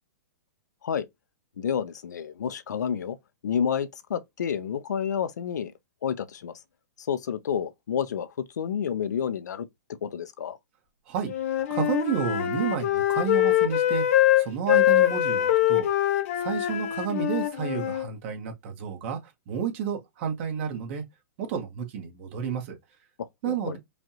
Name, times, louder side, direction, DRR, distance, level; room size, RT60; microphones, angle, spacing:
voice 1, 1.6-3.2 3.4-5.7 6.0-6.5 7.0-9.7 10.0-10.6 23.2-23.8, left 8 dB, 80° left, 0.7 m, -30 dB
Wind instrument woodwind instrument, 11.3-18.1, left 13 dB, 50° left, 1.0 m, -23 dB
voice 2, 11.7-15.9 16.4-19.2 19.5-21.0 21.4-22.8 23.4-23.8, right 7 dB, 45° right, 1.5 m, -31 dB
5.0 x 2.5 x 2.9 m
hypercardioid pair, 145°, 9 cm